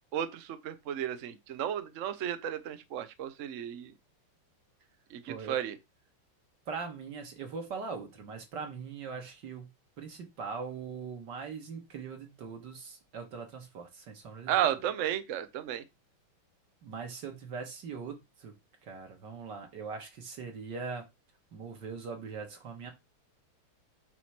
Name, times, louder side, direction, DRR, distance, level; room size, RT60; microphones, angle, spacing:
voice 1, 0.1-3.9 5.1-5.8 14.5-15.8, right 10 dB, 70° right, 0.7 m, -33 dB
voice 2, 5.3-5.6 6.7-9.7 10.0-14.5 16.8-18.5 18.8-21.1 21.5-22.9, right 5 dB, 55° right, 2.2 m, -41 dB
8.2 x 3.1 x 5.9 m
omnidirectional pair, 2.4 m